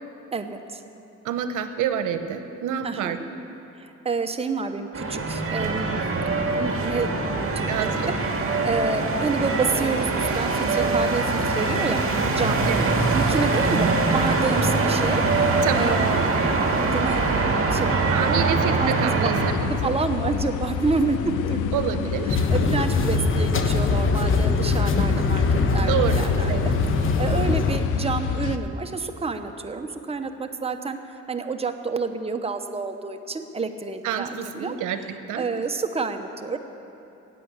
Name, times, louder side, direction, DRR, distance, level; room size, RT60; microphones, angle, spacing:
voice 1, 0.3-0.8 2.8-3.2 3.7-6.0 6.5-8.2 8.6-12.0 12.3-12.6 13.1-16.3 16.8-17.2 17.7-18.0 18.4-19.3 19.8-21.6 22.0-26.7 27.2-31.0 31.3-34.8 35.3-36.6, right 4 dB, 20° right, 6 dB, 0.9 m, -29 dB
voice 2, 1.2-3.4 7.7-8.1 12.7-13.0 15.6-16.0 18.1-19.9 21.7-22.4 25.9-26.7 34.0-35.0 35.3-35.5, right 8 dB, 90° right, 9 dB, 0.9 m, -28 dB
sound 1, 4.9-19.5, right 3 dB, 45° right, 2.0 m, -23 dB
sound 2, 19.3-28.6, left 7 dB, 80° left, 0.8 m, -29 dB
sound 3, 22.3-27.8, left 3 dB, 40° left, 1.2 m, -22 dB
14.5 x 9.0 x 8.2 m, 2.9 s
cardioid pair, 90°, 30 cm